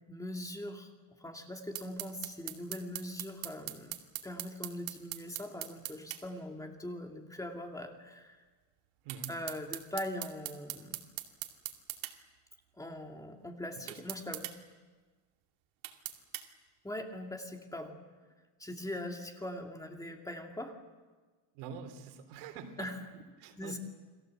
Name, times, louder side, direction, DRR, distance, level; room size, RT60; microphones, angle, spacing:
voice 1, 0.1-0.9 1.2-3.9 4.2-8.4 9.3-11.0 12.8-14.5 16.8-18.0 18.6-20.8 22.8-22.9 23.6-23.8, left 1 dB, 5° left, 3 dB, 2.3 m, -41 dB
sound 1, 1.7-6.2 9.1-12.1 13.9-14.6 15.8-16.5, right 16 dB, 70° right, 2.6 m, -40 dB
voice 2, 21.5-23.8, right 6 dB, 85° right, 7 dB, 3.5 m, -46 dB
30.0 x 22.5 x 7.7 m, 1.4 s
cardioid pair, 150°, 49 cm